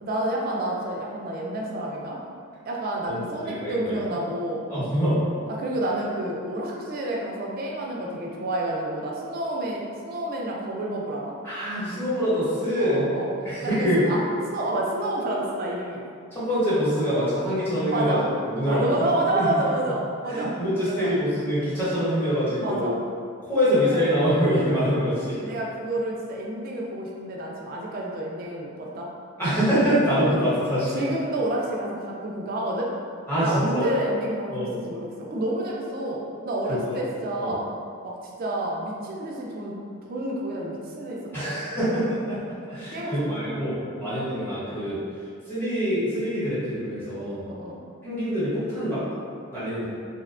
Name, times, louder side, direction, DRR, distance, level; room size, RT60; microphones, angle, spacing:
voice 1, 0.0-2.2 2.7-4.6 5.5-11.3 12.8-13.3 13.6-14.2 14.5-16.0 17.9-18.2 18.6-20.5 20.8-21.1 22.6-23.0 23.7-24.0 25.4-29.1 30.3-30.4 30.9-32.9 33.4-37.7 38.0-39.8 40.1-41.6 42.9-43.5 47.4-47.8, right 1 dB, 45° right, -2 dB, 0.3 m, -29 dB
voice 2, 3.1-4.0 4.7-5.2 11.4-13.1 13.4-14.0 16.3-19.1 19.3-19.5 20.3-22.9 23.4-25.4 29.4-31.0 33.3-33.9 34.5-34.7 36.7-37.0 37.4-37.5 41.3-45.0 45.5-47.4 48.0-49.0 49.5-49.9, equal, 10° left, -12 dB, 0.9 m, -25 dB
2.6 x 2.1 x 2.4 m, 2.2 s
head